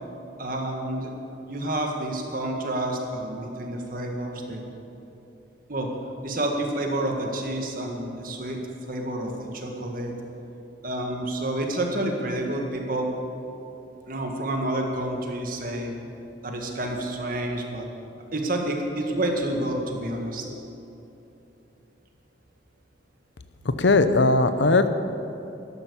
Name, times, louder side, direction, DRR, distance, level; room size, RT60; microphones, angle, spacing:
voice 1, 0.4-1.1 1.5-4.6 5.7-5.9 6.2-8.6 8.9-10.1 10.8-13.1 14.1-16.0 16.4-17.9 18.3-20.4, right 1 dB, 50° right, 2 dB, 1.9 m, -29 dB
voice 2, 23.6-24.9, left 3 dB, 80° left, 11 dB, 0.8 m, -19 dB
12.0 x 11.5 x 7.0 m, 2.9 s
head